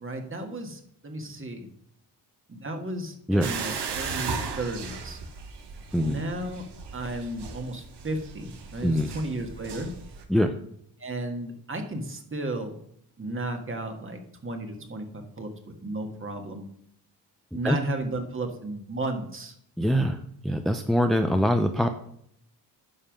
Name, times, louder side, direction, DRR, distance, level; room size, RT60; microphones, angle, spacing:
voice 1, 0.0-1.7 2.5-5.2 6.0-6.6 6.9-9.9 11.0-12.8 13.2-16.7 17.5-19.5, right 2 dB, 30° right, 4 dB, 1.7 m, -34 dB
sound 1, 3.4-10.2, right 5 dB, 85° right, 1.4 m, -37 dB
voice 2, 19.8-20.2 20.4-21.9, equal, ahead, 6 dB, 0.6 m, -23 dB
9.9 x 5.7 x 5.3 m, 0.70 s
cardioid pair, 90°, 40 cm